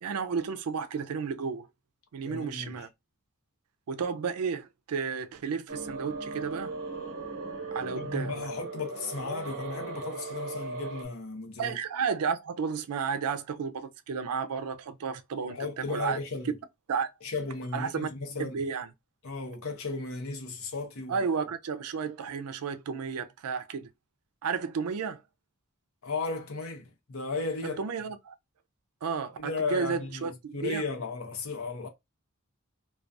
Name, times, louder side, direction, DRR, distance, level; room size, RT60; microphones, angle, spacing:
voice 1, 0.0-1.7 2.1-2.9 3.9-6.7 7.7-8.5 11.6-16.2 16.9-17.1 17.7-18.1 18.4-18.9 21.1-23.9 24.4-25.2 27.6-28.3 29.0-30.8, right 6 dB, 90° right, 0.4 m, -32 dB
voice 2, 2.2-2.9 7.9-11.8 15.5-16.5 17.2-18.6 19.2-21.2 26.0-27.8 29.4-31.9, left 3 dB, 65° left, 0.7 m, -35 dB
sound 1, 5.7-11.1, right 3 dB, 55° right, 0.9 m, -38 dB
2.3 x 2.3 x 2.5 m
head